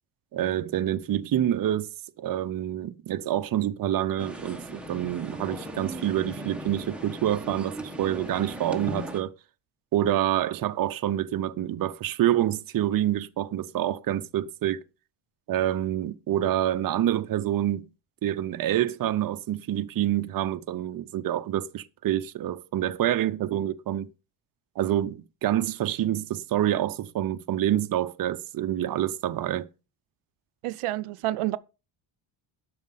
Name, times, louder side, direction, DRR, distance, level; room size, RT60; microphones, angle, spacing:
voice 1, 0.3-1.9 2.2-9.3 9.9-14.8 15.5-17.9 18.2-24.1 24.8-29.7, right 12 dB, 45° right, 0.6 m, -27 dB
sound 1, 4.2-9.2, right 1 dB, ahead, 1.0 m, -38 dB
voice 2, 30.6-31.6, right 16 dB, 85° right, 0.6 m, -29 dB
11.5 x 6.3 x 5.6 m
wide cardioid pair, 175°, 49 cm